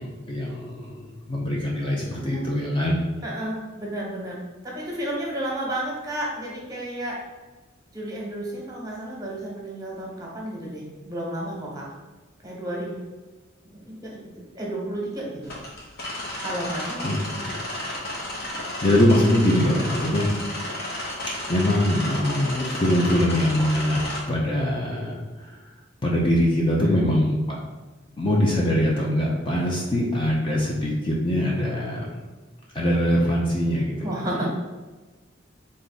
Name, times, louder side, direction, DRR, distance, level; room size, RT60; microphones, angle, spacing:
voice 1, 0.0-3.0 17.0-17.5 18.4-18.5 18.8-20.4 21.5-24.0 24.3-25.6 26.0-27.4 28.2-32.1 32.7-34.1, left 1 dB, 25° left, -3 dB, 0.6 m, -23 dB
voice 2, 2.1-2.5 3.2-7.2 7.9-11.8 12.4-13.0 13.7-14.2 14.5-15.4 16.4-17.0 26.8-27.1 34.0-34.5, right 1 dB, 20° right, -3 dB, 1.2 m, -32 dB
sound 1, 15.4-24.2, left 1 dB, 55° left, 1.2 m, -32 dB
3.8 x 3.5 x 4.0 m, 1.2 s
head